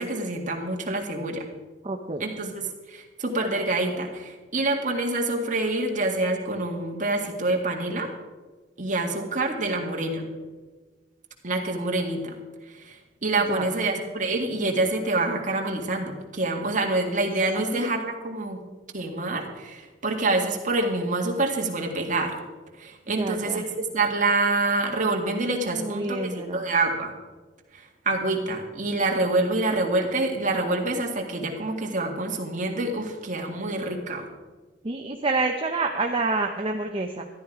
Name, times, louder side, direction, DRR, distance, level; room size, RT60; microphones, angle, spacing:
voice 1, 0.0-1.4 2.2-2.6 2.9-8.1 8.8-10.3 11.4-12.4 12.7-18.6 18.9-22.4 22.8-27.1 27.7-34.3, right 2 dB, 45° right, 2 dB, 1.9 m, -26 dB
voice 2, 1.8-2.2 13.5-13.9 17.6-17.8 23.2-23.7 25.8-26.6 34.8-37.3, right 3 dB, 30° right, 2 dB, 0.8 m, -28 dB
13.5 x 11.5 x 4.9 m, 1.3 s
head